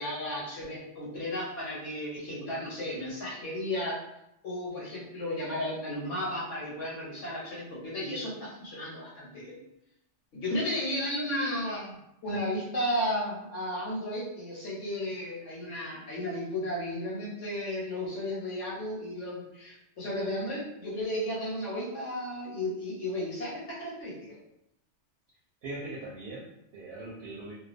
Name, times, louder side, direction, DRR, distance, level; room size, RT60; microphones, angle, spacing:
voice 1, 0.0-4.0 4.4-9.6 10.3-12.0 12.2-24.4, left 1 dB, 85° left, -6 dB, 1.1 m, -34 dB
voice 2, 25.6-27.5, right 2 dB, 65° right, -5 dB, 0.7 m, -40 dB
2.3 x 2.3 x 2.4 m, 0.82 s
omnidirectional pair, 1.2 m